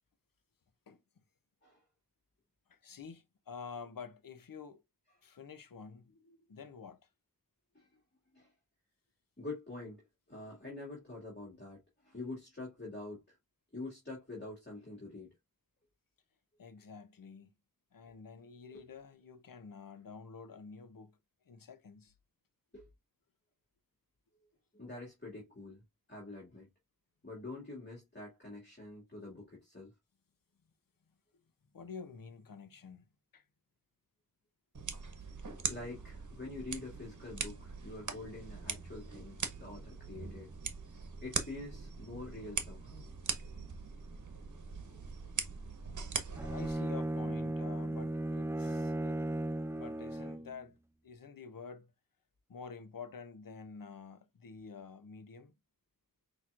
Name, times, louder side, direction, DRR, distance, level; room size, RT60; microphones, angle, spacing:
voice 1, 2.7-4.8 5.2-7.0 16.6-17.5 17.9-21.2 21.5-22.1 31.7-33.4 46.5-49.2 49.7-50.8 51.0-51.9 52.5-55.5, left 5 dB, 75° left, 0.7 m, -49 dB
voice 2, 9.4-13.4 13.7-15.3 18.7-18.8 22.7-22.9 24.7-25.8 26.1-26.7 27.2-29.9 35.7-40.5 41.2-43.0, left 2 dB, 30° left, 2.2 m, -46 dB
sound 1, 34.7-46.7, right 4 dB, 60° right, 0.9 m, -41 dB
Bowed string instrument, 46.4-50.6, right 1 dB, 10° right, 0.3 m, -36 dB
5.8 x 3.0 x 2.4 m
wide cardioid pair, 50°, 34 cm